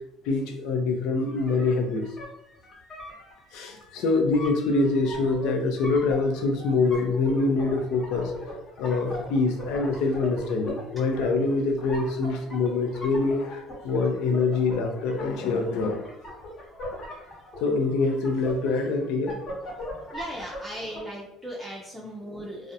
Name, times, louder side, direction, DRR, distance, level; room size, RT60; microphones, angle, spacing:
voice 1, 0.2-2.0 3.5-8.3 8.8-16.0 17.6-19.3, left 3 dB, 80° left, 3 dB, 0.4 m, -25 dB
sound 1, 1.3-21.0, left 1 dB, 50° left, 0.9 m, -40 dB
voice 2, 20.1-22.7, right 1 dB, 10° right, -4 dB, 0.5 m, -37 dB
2.4 x 2.0 x 2.7 m, 0.80 s
supercardioid pair, 90°, 0 cm